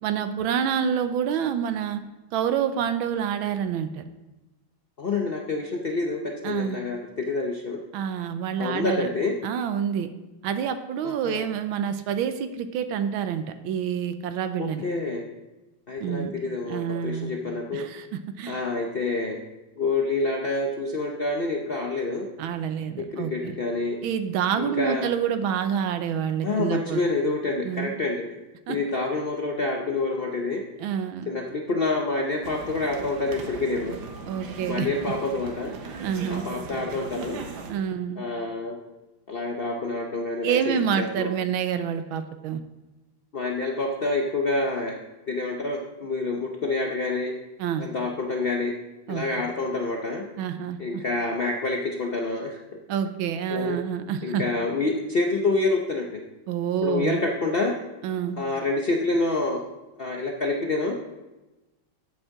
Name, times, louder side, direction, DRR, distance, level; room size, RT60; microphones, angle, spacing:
voice 1, 0.0-2.0 2.3-4.0 6.4-6.8 7.9-9.1 9.4-10.1 10.4-14.8 16.0-16.3 16.7-17.3 17.7-18.6 22.4-23.6 24.0-27.0 27.6-27.9 28.7-28.8 30.8-31.3 34.3-34.9 36.0-36.4 37.7-38.2 40.4-42.6 47.6-47.9 49.1-49.2 50.4-51.0 52.9-54.4 56.5-57.2 58.0-58.4, right 8 dB, 90° right, 9 dB, 1.5 m, -27 dB
voice 2, 5.0-7.8 8.6-9.3 11.0-11.4 14.6-15.2 15.9-17.9 18.5-19.4 19.8-22.3 23.1-24.0 24.6-25.1 26.4-28.2 28.7-30.6 31.3-33.9 34.7-35.9 36.3-37.4 38.2-38.8 39.3-41.3 43.3-45.0 45.3-47.3 47.8-48.7 49.1-50.2 50.8-52.6 53.5-53.8 54.2-56.2 56.8-57.7 58.4-59.6 60.0-61.0, left 3 dB, 75° left, 1 dB, 0.5 m, -27 dB
sound 1, 32.4-37.7, right 5 dB, 75° right, 1.8 m, -38 dB
12.0 x 8.0 x 3.7 m, 1.1 s
omnidirectional pair, 2.2 m